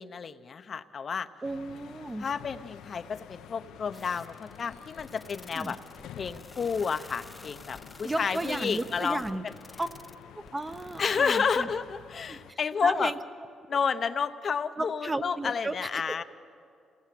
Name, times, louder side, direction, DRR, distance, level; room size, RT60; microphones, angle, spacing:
voice 1, 0.0-1.3 2.2-5.8 6.2-9.5 11.0-13.1 13.7-16.2, left 6 dB, 45° left, 9 dB, 0.8 m, -30 dB
sound 1, 1.4-12.5, left 10 dB, 85° left, 0.8 m, -49 dB
voice 2, 1.4-2.3 5.5-5.7 8.0-9.5 9.8-9.9 10.3-11.7 12.3-12.4 12.8-13.2 13.7-13.8 14.8-16.0, right 2 dB, 20° right, 9 dB, 1.0 m, -34 dB
sound 2, 3.9-11.2, left 2 dB, 15° left, 0.7 m, -49 dB
27.0 x 18.0 x 7.7 m, 2.4 s
cardioid pair, 90°, 0 cm